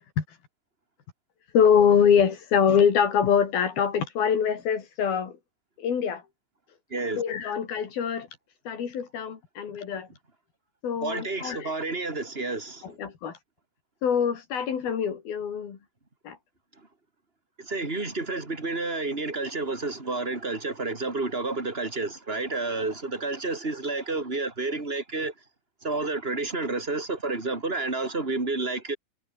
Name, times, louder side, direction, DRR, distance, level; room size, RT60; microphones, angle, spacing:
voice 1, 1.5-5.4 5.8-6.2 7.1-8.3 8.7-10.1 10.8-11.8 12.8-13.4 14.0-15.8 16.2-16.4, left 7 dB, 80° left, 5.1 m, -24 dB
voice 2, 11.0-12.8 17.7-25.3 25.8-29.0, right 3 dB, 15° right, 4.0 m, -30 dB
omnidirectional pair, 4.2 m